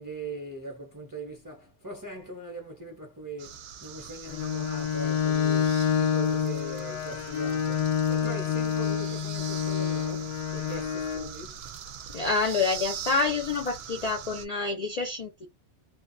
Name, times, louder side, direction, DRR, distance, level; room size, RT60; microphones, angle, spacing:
voice 1, 0.0-11.7, right 2 dB, 25° right, 0.6 m, -41 dB
sound 1, 3.4-14.5, right 8 dB, 65° right, 0.8 m, -42 dB
Bowed string instrument, 4.3-11.3, left 8 dB, 90° left, 0.9 m, -28 dB
voice 2, 12.1-15.5, left 4 dB, 55° left, 0.4 m, -27 dB
2.6 x 2.2 x 2.4 m
omnidirectional pair, 1.2 m